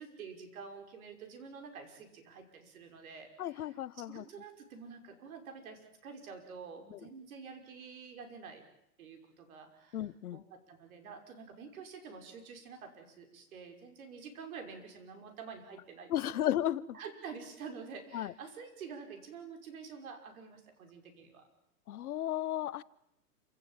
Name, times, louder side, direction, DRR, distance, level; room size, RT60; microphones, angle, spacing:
voice 1, 0.0-8.6 9.0-16.5 16.9-21.5, right 5 dB, 60° right, 6 dB, 5.9 m, -48 dB
voice 2, 3.4-4.2 6.9-7.0 9.9-10.4 16.1-17.0 18.1-18.3 21.9-22.8, left 12 dB, 65° left, 19 dB, 0.9 m, -34 dB
28.0 x 17.5 x 9.1 m, 0.80 s
hypercardioid pair, 150°, 47 cm